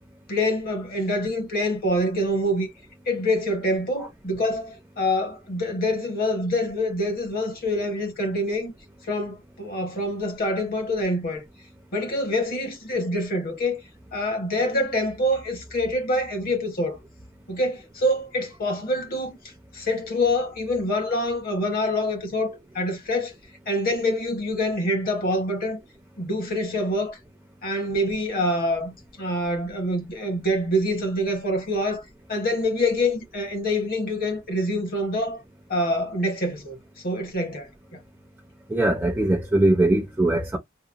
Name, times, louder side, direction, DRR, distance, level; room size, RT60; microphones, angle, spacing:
voice 1, 0.3-2.7 3.1-8.7 9.0-11.4 11.9-13.8 14.1-17.0 17.5-19.4 19.7-23.3 23.7-25.8 26.2-27.2 27.6-32.0 32.3-35.4 35.7-36.7 37.0-38.0, left 1 dB, 50° left, 1.0 m, -26 dB
voice 2, 38.7-40.6, right 1 dB, 10° right, 0.5 m, -21 dB
2.9 x 2.0 x 2.4 m
head